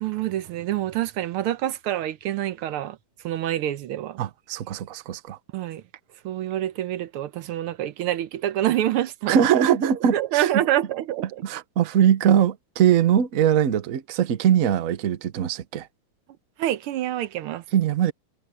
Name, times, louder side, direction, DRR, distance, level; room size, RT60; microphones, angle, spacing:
voice 1, 0.0-3.0 3.2-4.2 5.5-5.8 6.2-9.4 10.1-11.4 16.6-17.6, right 13 dB, 90° right, 1.7 m, -26 dB
voice 2, 4.2-5.4 9.3-10.5 11.4-15.9 17.7-18.1, right 9 dB, 50° right, 1.1 m, -21 dB
omnidirectional pair, 2.3 m